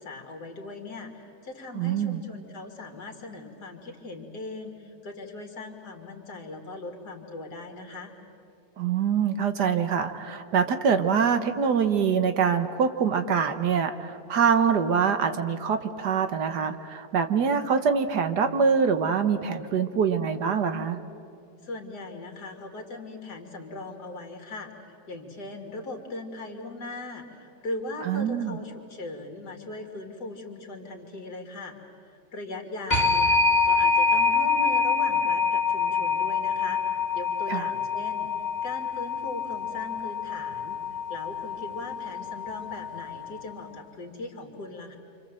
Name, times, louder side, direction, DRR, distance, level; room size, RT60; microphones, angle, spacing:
voice 1, 0.0-8.1 21.6-31.8 32.3-36.8 37.1-38.3 38.6-45.0, left 2 dB, 60° left, 3 dB, 3.1 m, -39 dB
voice 2, 1.7-2.2 8.8-21.0 28.0-28.6 37.5-37.7, right 6 dB, 65° right, 8 dB, 1.7 m, -24 dB
sound 1, 32.9-43.5, left 5 dB, 25° left, 2.2 m, -26 dB
29.0 x 26.0 x 7.7 m, 2.5 s
omnidirectional pair, 2.0 m